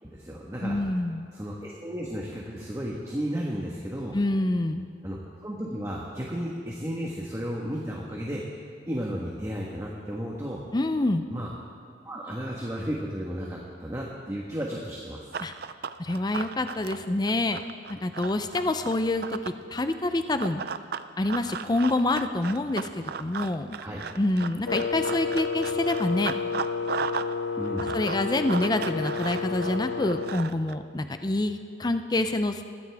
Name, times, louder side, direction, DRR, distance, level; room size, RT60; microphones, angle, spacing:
voice 1, 0.0-0.8 1.3-4.2 5.0-5.2 5.4-10.6 11.3-11.5 12.0-15.2 23.8-24.0 27.6-27.9, equal, 15° right, -3 dB, 1.3 m, -33 dB
voice 2, 0.6-1.3 4.1-4.9 10.7-11.2 15.4-15.5 16.0-17.6 17.9-20.6 21.2-23.8 24.2-26.3 27.9-32.6, left 2 dB, 20° left, 9 dB, 0.5 m, -27 dB
Run, 15.3-19.6 20.4-27.3 27.6-30.7, right 6 dB, 55° right, 0.5 m, -36 dB
Wind instrument woodwind instrument, 24.7-30.4, left 5 dB, 70° left, 0.5 m, -31 dB
21.0 x 14.5 x 3.5 m, 2.5 s
head